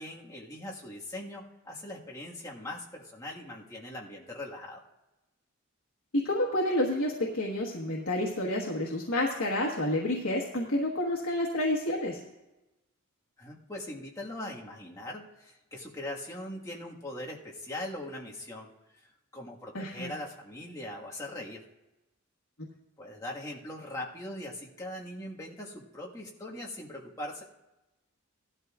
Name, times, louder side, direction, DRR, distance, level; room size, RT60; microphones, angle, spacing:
voice 1, 0.0-4.9 13.4-18.7 19.0-21.6 23.0-27.4, left 1 dB, 15° left, -3 dB, 1.6 m, -41 dB
voice 2, 6.1-12.2 19.7-20.1, left 1 dB, 75° left, -2 dB, 1.4 m, -29 dB
17.0 x 12.0 x 2.4 m, 1.0 s
head